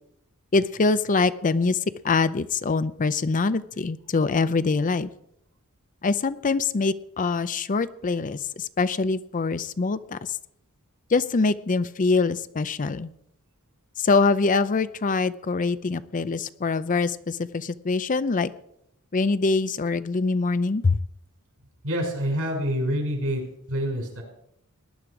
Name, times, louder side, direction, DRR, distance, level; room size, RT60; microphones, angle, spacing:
voice 1, 0.5-1.8 2.0-5.1 6.0-10.2 11.1-13.1 14.0-18.5 19.1-21.0, left 4 dB, 35° left, 14 dB, 0.5 m, -24 dB
voice 2, 21.8-23.4 23.7-24.2, equal, 70° right, 1 dB, 5.7 m, -26 dB
19.0 x 10.5 x 4.9 m, 0.76 s
head